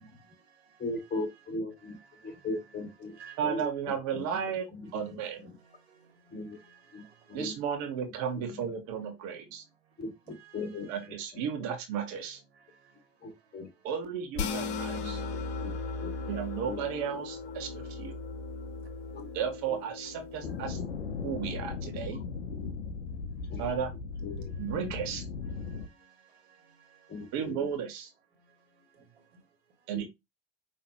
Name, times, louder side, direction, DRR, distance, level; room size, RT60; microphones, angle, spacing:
voice 1, 0.0-0.8 1.8-2.5 3.0-3.4 4.8-5.1 5.4-7.4 9.8-11.0 12.5-13.9 15.2-16.3 18.5-19.4 23.4-23.6 24.5-24.7 25.6-27.3 28.4-29.4, right 7 dB, 85° right, 1.6 m, -59 dB
voice 2, 0.8-1.9 2.2-3.2 3.4-4.2 4.7-5.5 6.3-6.6 6.9-7.0 7.3-7.5 8.5-8.6 10.0-10.9 11.6-11.7 13.2-13.7 14.9-16.1 16.7-16.8 19.1-19.3 20.7-20.8 22.2-22.7 23.5-23.7 24.2-24.9 27.1-27.7 29.9-30.0, left 2 dB, 30° left, 2.2 m, -39 dB
voice 3, 3.4-4.7 4.9-5.4 7.3-9.6 10.9-12.4 13.8-15.2 16.3-18.2 19.3-20.8 21.2-22.2 23.6-23.9 24.6-25.2 27.3-28.1 29.9-30.0, right 8 dB, 60° right, 1.2 m, -34 dB
sound 1, 14.3-20.8, left 4 dB, 70° left, 1.1 m, -37 dB
sound 2, 20.4-25.9, left 5 dB, 90° left, 0.7 m, -37 dB
5.5 x 3.1 x 2.9 m
hypercardioid pair, 70°, 32 cm